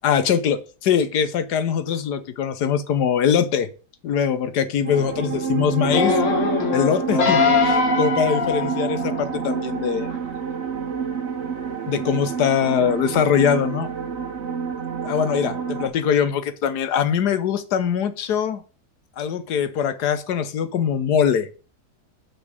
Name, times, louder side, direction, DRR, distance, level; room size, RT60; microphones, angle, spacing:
voice 1, 0.0-3.7 4.0-6.2 6.7-7.4 7.6-10.1 11.9-13.9 15.0-18.6 19.2-21.5, left 8 dB, 80° left, 12 dB, 1.5 m, -22 dB
sound 1, 4.8-15.9, right 7 dB, 50° right, 1.2 m, -28 dB
sound 2, 5.8-9.4 10.0-10.1, left 5 dB, 55° left, 1.7 m, -22 dB
6.2 x 5.8 x 6.6 m, 0.36 s
omnidirectional pair, 1.7 m